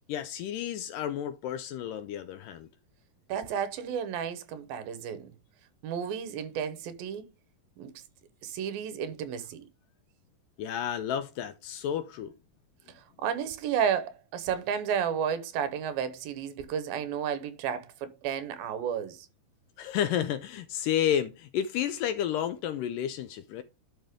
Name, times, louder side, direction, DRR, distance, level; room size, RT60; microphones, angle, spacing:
voice 1, 0.1-2.7 10.6-12.3 19.8-23.6, left 10 dB, 80° left, 2.0 m, -31 dB
voice 2, 3.3-5.3 5.8-7.3 7.8-7.9 8.4-9.7 13.2-19.2, right 8 dB, 80° right, 2.7 m, -32 dB
11.5 x 5.1 x 3.6 m
omnidirectional pair, 4.3 m